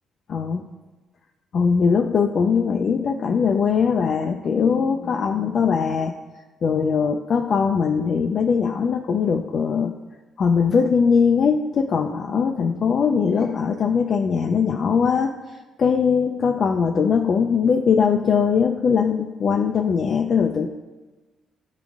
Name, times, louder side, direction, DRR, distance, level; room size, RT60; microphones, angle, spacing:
voice 1, 0.3-0.6 1.5-6.1 6.6-9.9 10.4-15.3 15.8-20.7, left 6 dB, 55° left, 3 dB, 0.3 m, -20 dB
10.5 x 3.8 x 2.4 m, 1.2 s
cardioid pair, 90°, 0 cm